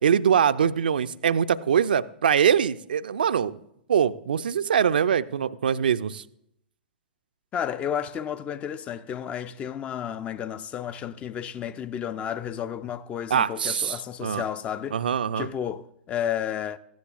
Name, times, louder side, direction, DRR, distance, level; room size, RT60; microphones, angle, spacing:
voice 1, 0.0-3.6 3.9-6.2 13.3-14.4 14.9-15.5, right 8 dB, 60° right, 0.5 m, -23 dB
voice 2, 7.5-15.0 15.4-16.8, left 9 dB, 20° left, 0.5 m, -32 dB
16.5 x 14.5 x 2.5 m
figure-of-eight pair, 105°, 6 cm